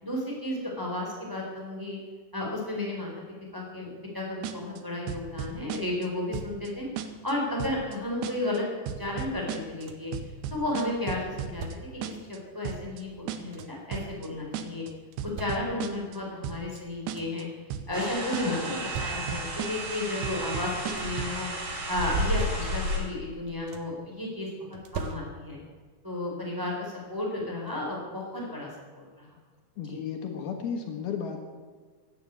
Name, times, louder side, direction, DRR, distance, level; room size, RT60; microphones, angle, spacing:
voice 1, 0.0-2.0 2.3-3.1 3.5-6.9 7.2-8.6 9.0-10.1 10.5-11.6 11.9-14.8 15.4-17.4 17.9-21.5 21.9-24.5 24.9-25.6 26.0-28.7 29.0-29.3 29.9-30.0, left 2 dB, 5° right, -2 dB, 4.0 m, -33 dB
sound 1, 4.4-4.8 5.1-6.1 6.3-6.7 7.0-7.3 7.6-8.0 8.2-8.6 8.9-9.9 10.1-11.8 12.0-12.4 12.7-13.0 13.3-13.6 13.9-14.3 14.5-14.9 15.2-16.2 16.4-16.8 17.1-17.4 17.7-18.1 18.3-18.7 19.0-20.0 20.2-21.4, right 9 dB, 90° right, 3.1 m, -35 dB
sound 2, 9.4-10.2 11.2-12.2 13.1-14.0 14.9-16.1 16.6-16.7 16.9-17.5 18.5-19.6 20.6-21.3 22.0-23.1 23.3-24.1 24.7-25.7 27.0-27.1 27.6-27.8, right 4 dB, 65° right, 2.1 m, -43 dB
sound 3, 17.9-23.0, equal, 35° right, 4.7 m, -32 dB
voice 2, 18.4-18.8 29.8-31.4, left 7 dB, 70° left, 4 dB, 3.2 m, -34 dB
16.0 x 9.5 x 8.5 m, 1.5 s
omnidirectional pair, 4.7 m